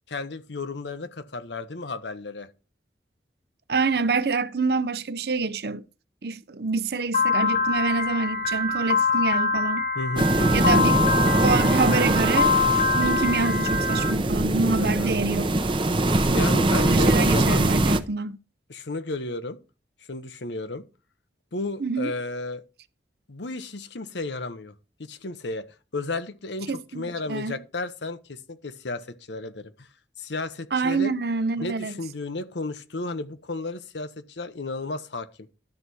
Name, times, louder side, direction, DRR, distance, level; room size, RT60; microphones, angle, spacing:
voice 1, 0.1-2.5 9.9-10.7 14.8-15.1 16.3-17.6 18.7-19.6 20.1-20.8 21.5-22.6 23.3-24.7 25.0-25.7 25.9-29.9 30.2-31.1 31.6-35.3, left 2 dB, 80° left, 1.0 m, -33 dB
voice 2, 3.7-5.8 6.2-9.8 10.5-15.5 16.7-18.4 21.8-22.1 26.7-27.6 30.7-31.9, right 4 dB, 60° right, 0.6 m, -27 dB
Piano, 7.1-14.1, left 4 dB, 40° left, 1.4 m, -24 dB
sound 1, 10.2-18.0, right 2 dB, 30° right, 0.7 m, -22 dB
12.0 x 4.1 x 6.2 m
head